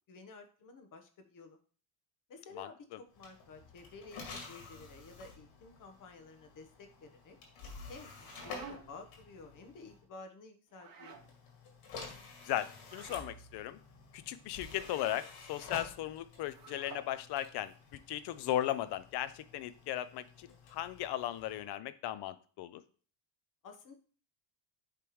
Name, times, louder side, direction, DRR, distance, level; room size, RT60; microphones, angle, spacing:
voice 1, 0.1-1.6 2.3-7.4 7.9-11.2 23.6-23.9, left 3 dB, 40° left, 6 dB, 1.1 m, -52 dB
sound 1, 3.1-10.0 11.1-21.6, left 4 dB, 85° left, 2.3 m, -51 dB
sound 2, 8.0-9.1 10.7-11.3 12.8-13.3 14.8-15.2 16.5-17.1, right 5 dB, 50° right, 1.5 m, -51 dB
voice 2, 12.4-13.8 14.1-17.7 18.1-22.8, left 13 dB, 55° left, 14 dB, 0.6 m, -37 dB
10.0 x 3.4 x 3.1 m, 0.42 s
cardioid pair, 120°, 47 cm